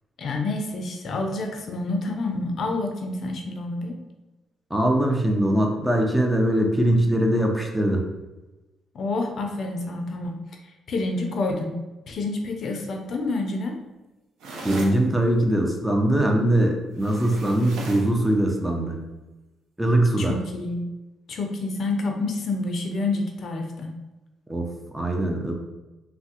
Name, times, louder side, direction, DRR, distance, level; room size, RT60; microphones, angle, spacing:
voice 1, 0.2-4.0 8.9-10.4 10.9-11.8 12.1-13.8 20.2-20.9 21.3-23.9, left 2 dB, 60° left, 3 dB, 0.4 m, -28 dB
voice 2, 4.7-8.0 14.6-19.0 19.8-20.4 24.5-24.7 24.9-25.5, right 1 dB, 5° right, 1 dB, 0.5 m, -21 dB
sound 1, 14.4-15.0 17.0-18.2, right 2 dB, 85° right, 0.6 m, -36 dB
3.4 x 2.0 x 2.8 m, 1.1 s
cardioid pair, 90°, 0 cm